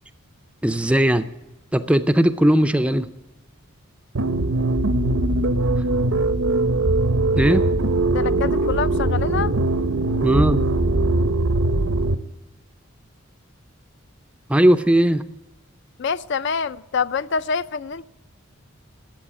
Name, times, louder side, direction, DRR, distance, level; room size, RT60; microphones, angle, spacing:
voice 1, 0.6-1.2 1.7-3.1 7.4-7.6 10.2-10.6 14.5-15.2, right 1 dB, 5° right, 0.4 m, -18 dB
sound 1, 4.1-12.1, right 2 dB, 75° right, 0.7 m, -21 dB
sound 2, 4.7-11.2, equal, 75° left, 1.8 m, -31 dB
voice 2, 8.1-9.5 16.0-18.0, left 5 dB, 55° left, 0.4 m, -26 dB
13.5 x 8.0 x 10.0 m
head